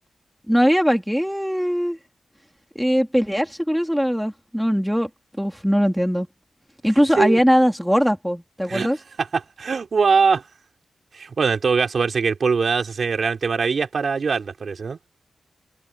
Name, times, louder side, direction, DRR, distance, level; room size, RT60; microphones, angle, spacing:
voice 1, 0.5-2.0 2.7-5.1 5.4-6.3 6.8-9.0, equal, ahead, 3.1 m, -20 dB
voice 2, 9.2-10.4 11.1-15.0, right 5 dB, 55° right, 4.3 m, -22 dB
wide cardioid pair, 100°, 0 cm